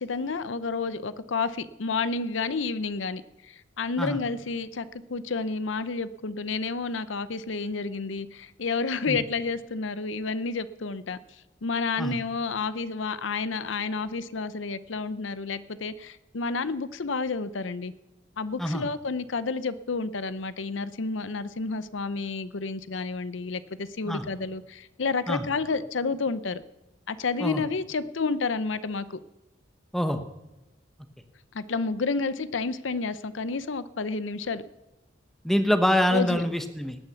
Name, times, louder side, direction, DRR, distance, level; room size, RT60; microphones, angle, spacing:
voice 1, 0.0-17.9 18.4-26.6 27.1-29.2 31.5-34.6 36.1-36.4, left 4 dB, 75° left, 15 dB, 0.7 m, -30 dB
voice 2, 29.9-30.2 35.4-37.0, equal, ahead, 8 dB, 0.9 m, -25 dB
19.5 x 9.1 x 6.9 m, 1.0 s
head